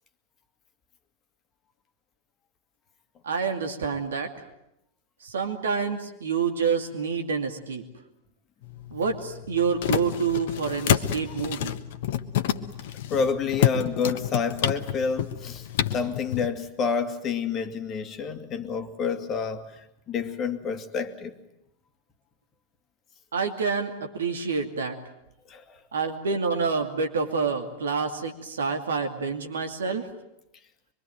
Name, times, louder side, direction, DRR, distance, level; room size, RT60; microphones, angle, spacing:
voice 1, 3.2-4.3 5.2-7.8 8.9-11.7 23.3-25.0 25.9-30.1, right 5 dB, 65° right, 2.5 m, -28 dB
sound 1, 8.6-16.5, left 10 dB, 55° left, 1.2 m, -29 dB
voice 2, 13.1-15.7 15.9-21.3 25.5-25.8, left 5 dB, 30° left, 2.1 m, -29 dB
24.5 x 23.5 x 9.2 m
figure-of-eight pair, 90°, 0 cm